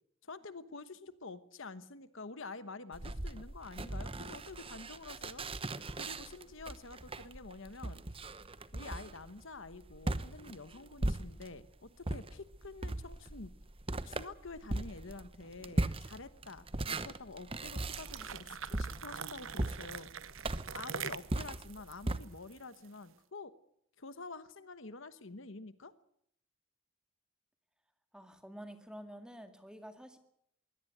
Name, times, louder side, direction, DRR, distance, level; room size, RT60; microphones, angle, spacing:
voice 1, 0.2-5.5 5.9-8.0 8.3-8.4 8.7-13.5 14.0-20.1 20.7-23.5 24.0-25.9, left 3 dB, 60° left, 13 dB, 1.1 m, -48 dB
sound 1, 2.9-11.7 12.0-22.2, right 2 dB, 25° right, 0.9 m, -39 dB
sound 2, 17.7-23.0, right 7 dB, 65° right, 0.9 m, -44 dB
voice 2, 28.1-30.2, equal, 5° right, 7 dB, 2.0 m, -49 dB
22.5 x 17.5 x 8.0 m, 0.72 s
head